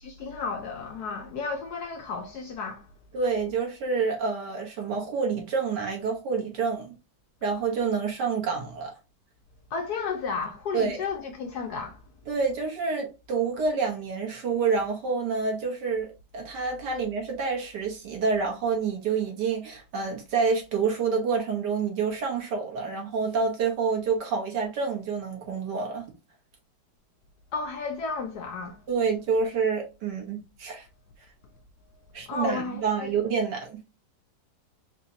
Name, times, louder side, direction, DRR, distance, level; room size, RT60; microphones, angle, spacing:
voice 1, 0.0-2.9 9.7-12.0 27.5-28.8 32.3-33.1, left 4 dB, 70° left, 1.0 m, -33 dB
voice 2, 3.1-6.9 7.4-8.9 10.7-11.0 12.3-26.0 28.9-30.9 32.1-33.8, right 5 dB, 60° right, 1.6 m, -28 dB
4.0 x 2.9 x 2.6 m
omnidirectional pair, 2.1 m